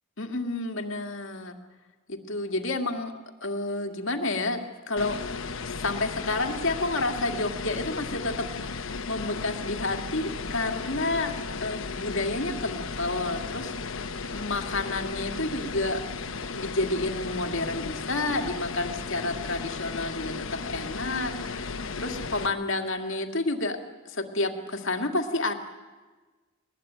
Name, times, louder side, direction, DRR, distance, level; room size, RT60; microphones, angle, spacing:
voice 1, 0.2-1.6 2.1-3.1 3.4-4.6 4.9-5.2 5.6-11.3 11.6-16.0 16.5-23.8 24.1-25.5, left 2 dB, 70° left, 4 dB, 2.1 m, -30 dB
sound 1, 5.0-22.5, left 4 dB, 85° left, 1.1 m, -35 dB
21.0 x 20.5 x 9.1 m, 1.3 s
head